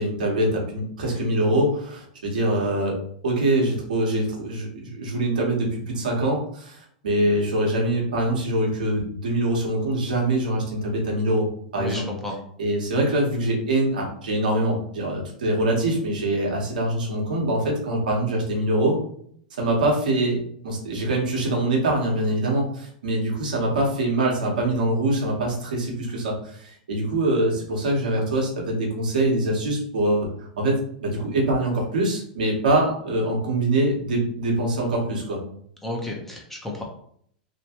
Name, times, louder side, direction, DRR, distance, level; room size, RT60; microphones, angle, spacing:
voice 1, 0.0-3.0 3.2-12.1 12.6-19.0 19.6-20.4 20.6-30.3 30.6-35.4, right 1 dB, 85° right, -1 dB, 1.1 m, -24 dB
voice 2, 11.8-12.3 35.8-36.8, left 1 dB, 5° left, -1 dB, 0.8 m, -32 dB
3.0 x 2.2 x 2.9 m, 0.63 s
hypercardioid pair, 120°, 4 cm